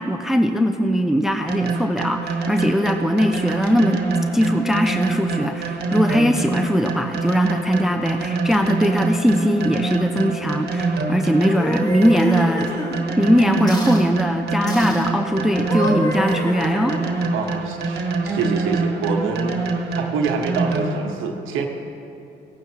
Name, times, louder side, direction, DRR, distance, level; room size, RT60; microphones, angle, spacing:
voice 1, 0.0-4.0 4.3-12.7 13.2-17.0, equal, ahead, 6 dB, 0.5 m, -20 dB
sound 1, 1.5-21.1, right 3 dB, 55° right, 1.3 m, -25 dB
sound 2, 11.3-13.0 13.7-14.1 14.7-15.1 15.6-17.3, equal, 20° left, 1.4 m, -29 dB
voice 2, 17.3-19.5 20.0-21.7, right 5 dB, 85° right, 3 dB, 1.1 m, -26 dB
17.5 x 9.4 x 2.9 m, 2.7 s
cardioid pair, 90°, 20 cm